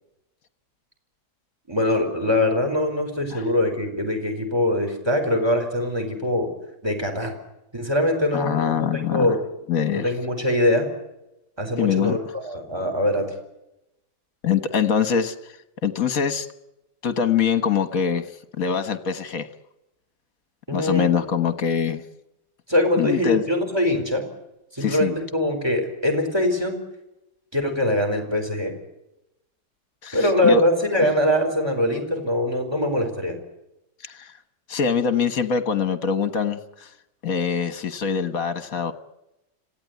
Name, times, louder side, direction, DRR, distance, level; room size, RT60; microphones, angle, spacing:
voice 1, 1.7-6.5 6.8-7.3 7.7-9.4 9.9-10.9 11.6-13.3 20.7-21.1 22.7-24.2 24.7-26.8 27.5-28.7 30.1-33.4, left 1 dB, 15° right, 5 dB, 4.8 m, -23 dB
voice 2, 8.3-9.4 9.7-10.1 11.8-12.3 14.4-15.4 15.8-16.5 17.0-18.3 18.6-19.5 20.7-22.0 23.0-23.5 24.8-25.1 30.0-30.6 34.0-34.3 34.7-36.9 37.2-38.9, left 7 dB, 55° left, 12 dB, 1.7 m, -23 dB
26.5 x 16.5 x 9.5 m, 0.91 s
omnidirectional pair, 1.9 m